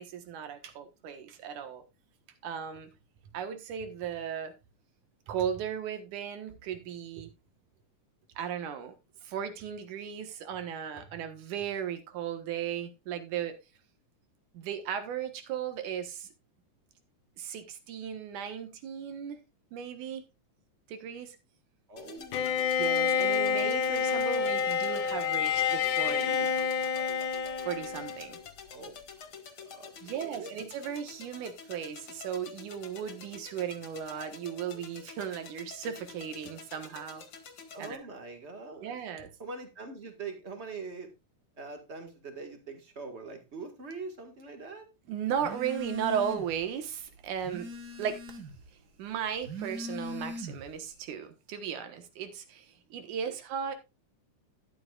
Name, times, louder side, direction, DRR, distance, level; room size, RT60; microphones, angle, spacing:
voice 1, 0.0-1.8 2.4-2.9 3.3-4.5 5.3-7.3 8.4-8.9 9.2-13.5 14.5-16.3 17.4-19.4 19.7-20.3 20.9-21.4 22.8-26.5 27.6-28.4 30.0-37.2 37.8-38.0 38.8-39.3 45.1-47.7 48.0-48.2 49.0-53.7, right 8 dB, 75° right, 2.8 m, -36 dB
voice 2, 21.9-22.7 28.6-29.0 29.6-30.5 37.7-39.0 39.4-41.1 41.6-44.9 53.2-53.3, right 4 dB, 30° right, 1.4 m, -43 dB
sound 1, 22.0-38.0, left 6 dB, 45° left, 2.5 m, -48 dB
Bowed string instrument, 22.3-28.4, left 6 dB, 85° left, 2.5 m, -28 dB
Telephone, 45.4-46.6 47.0-48.7 49.3-50.8, equal, 50° right, 1.3 m, -41 dB
12.5 x 10.0 x 2.4 m
omnidirectional pair, 3.5 m